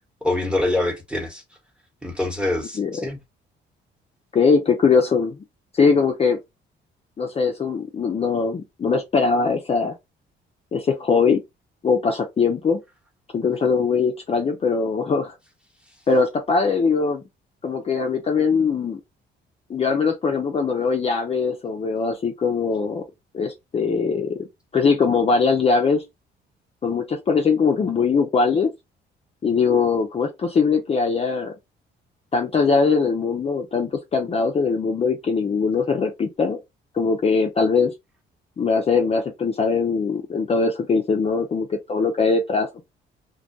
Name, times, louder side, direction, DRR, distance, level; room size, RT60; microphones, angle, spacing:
voice 1, 0.2-1.4 2.0-3.2, left 2 dB, 5° right, 0.9 m, -25 dB
voice 2, 4.3-5.4 5.7-6.4 7.2-9.9 10.7-11.4 11.8-12.8 13.3-15.4 16.1-17.2 17.6-19.0 19.7-23.0 23.3-24.5 24.7-26.0 26.8-28.7 29.4-31.5 32.3-36.6 36.9-37.9 38.6-42.9, left 5 dB, 30° left, 0.4 m, -21 dB
2.2 x 2.1 x 2.6 m
cardioid pair, 90°, 20 cm